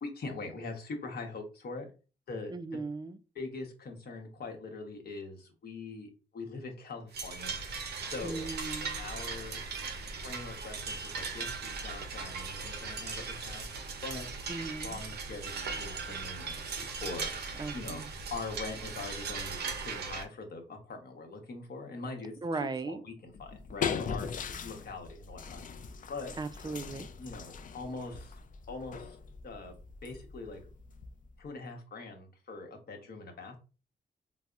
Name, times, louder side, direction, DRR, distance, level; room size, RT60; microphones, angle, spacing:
voice 1, 0.0-1.9 2.3-2.8 3.3-8.5 8.9-9.6 10.2-13.7 14.0-14.3 14.8-17.3 17.7-22.3 22.8-25.6 26.1-26.3 27.2-28.4 28.7-29.2 29.4-29.7 30.0-30.6 31.4-33.6, left 3 dB, 70° left, 0.9 m, -42 dB
voice 2, 2.5-3.2 8.2-9.0 14.5-15.0 17.6-18.1 22.4-23.0 26.4-27.1, right 3 dB, 25° right, 0.3 m, -37 dB
sound 1, 7.1-20.2, right 4 dB, 85° right, 0.6 m, -38 dB
sound 2, 23.3-31.4, left 6 dB, 55° left, 0.4 m, -40 dB
4.0 x 2.0 x 2.4 m
cardioid pair, 90°, 16 cm